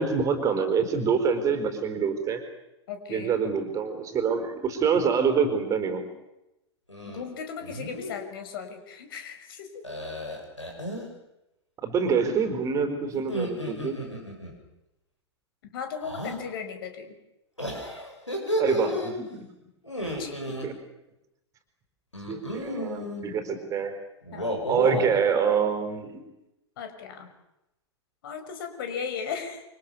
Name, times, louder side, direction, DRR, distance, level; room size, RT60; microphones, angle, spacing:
voice 1, 0.0-2.4 3.1-6.1 11.8-14.1 18.6-19.5 20.0-20.1 20.6-20.7 22.3-24.0 24.7-26.2, right 6 dB, 20° right, 8 dB, 4.4 m, -26 dB
voice 2, 2.9-3.4 7.1-9.8 15.7-17.2 20.2-20.3 24.3-24.7 26.8-27.3 28.2-29.6, left 6 dB, 50° left, 7 dB, 5.9 m, -36 dB
sound 1, 6.9-7.2 7.6-8.1 9.8-11.1 13.2-14.5 16.0-16.4 17.6-19.1 19.8-20.7 22.1-23.2 24.2-25.2, equal, 85° left, 8.0 m, -32 dB
28.5 x 25.0 x 7.0 m, 0.90 s
figure-of-eight pair, 105°, 15 cm